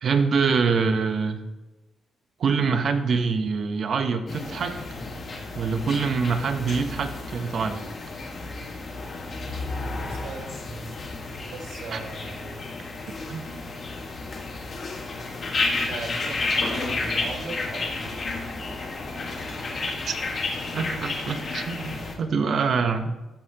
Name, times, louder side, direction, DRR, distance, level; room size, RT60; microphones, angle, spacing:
voice 1, 0.0-1.4 2.4-4.8 5.5-7.8 11.9-12.0 13.3-13.4 20.1-20.2 20.7-23.1, right 5 dB, 55° right, 7 dB, 0.8 m, -25 dB
sound 1, 4.3-22.1, left 3 dB, 45° left, 1.4 m, -31 dB
voice 2, 10.0-10.9 11.5-12.6 15.8-18.4 22.3-22.8, right 3 dB, 85° right, 1 dB, 1.6 m, -39 dB
14.0 x 5.5 x 2.9 m, 1.0 s
cardioid pair, 140°, 0 cm